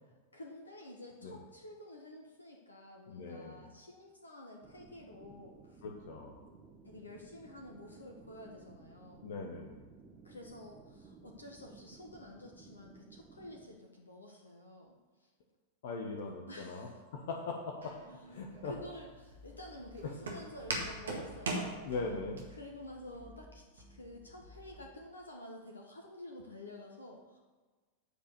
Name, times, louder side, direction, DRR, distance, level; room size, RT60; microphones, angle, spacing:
voice 1, 0.3-5.8 6.2-6.6 6.8-9.3 10.2-14.9 15.2-15.3 16.5-17.0 18.6-21.9 22.6-27.4, left 1 dB, 75° left, 1 dB, 1.2 m, -50 dB
voice 2, 3.1-3.7 5.8-6.4 9.2-9.8 15.8-18.0 18.3-18.7 21.6-22.5, left 3 dB, 55° left, 1 dB, 1.2 m, -40 dB
sound 1, 4.6-13.7, right 4 dB, 25° right, 1.3 m, -57 dB
Walk footsteps, 17.8-22.4, right 2 dB, 70° right, 1.9 m, -40 dB
sound 2, 18.4-24.9, left 2 dB, 55° right, 2.0 m, -58 dB
8.9 x 5.0 x 6.8 m, 1.4 s
figure-of-eight pair, 90°, 0 cm